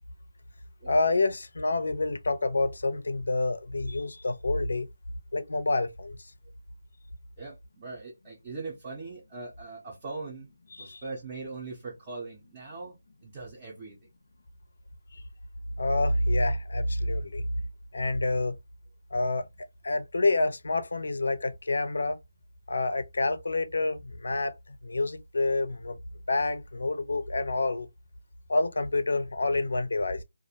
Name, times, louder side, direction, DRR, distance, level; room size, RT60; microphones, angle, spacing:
voice 1, 0.9-4.9 5.3-6.2 10.8-11.0 15.1-15.2 15.8-17.4 17.9-18.5 19.1-19.5 19.8-22.2 22.7-26.0 26.3-27.9 28.5-30.2, left 2 dB, 65° left, 0.5 m, -28 dB
voice 2, 7.4-10.5 10.8-14.1, right 3 dB, 15° right, 0.5 m, -41 dB
2.4 x 2.0 x 2.7 m
hypercardioid pair, 175°, 0 cm